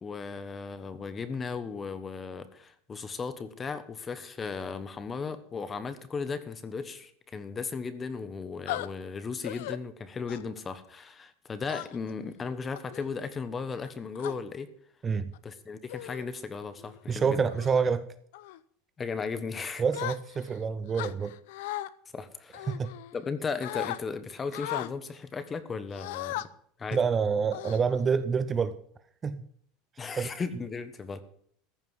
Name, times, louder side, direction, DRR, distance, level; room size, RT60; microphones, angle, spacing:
voice 1, 0.0-14.7 15.4-17.4 19.0-19.8 22.1-22.7 23.1-26.5 26.8-27.0 30.0-31.2, left 5 dB, 20° left, 12 dB, 1.2 m, -36 dB
sound 1, 8.7-8.9 9.4-9.8 10.3-10.6 11.7-12.1 12.7-13.0 13.8-14.3 15.2-15.4 15.9-16.3 16.7-17.0 17.5-17.8 18.3-18.6 19.9-20.6 20.9-21.9 22.5-23.3 23.6-24.0 24.5-24.9 25.9-26.5 26.9-27.1 27.5-28.2, left 15 dB, 75° left, 0.7 m, -37 dB
voice 2, 17.1-18.1 19.8-21.3 22.7-22.9 26.9-28.8 29.2-29.4 30.2-30.3, right 5 dB, 20° right, 12 dB, 0.6 m, -27 dB
14.5 x 5.4 x 9.5 m, 0.63 s
supercardioid pair, 145°, 0 cm